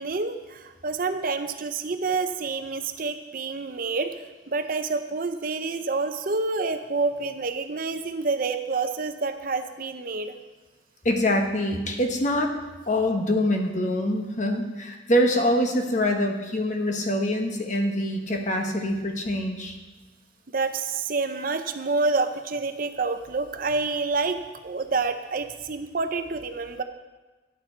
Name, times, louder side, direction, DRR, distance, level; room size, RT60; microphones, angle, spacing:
voice 1, 0.0-4.1 4.5-10.3 20.5-26.8, right 3 dB, 50° right, 8 dB, 0.6 m, -28 dB
voice 2, 11.0-12.5 12.9-19.8, left 1 dB, 40° left, 3 dB, 1.1 m, -24 dB
10.5 x 9.0 x 4.4 m, 1.2 s
head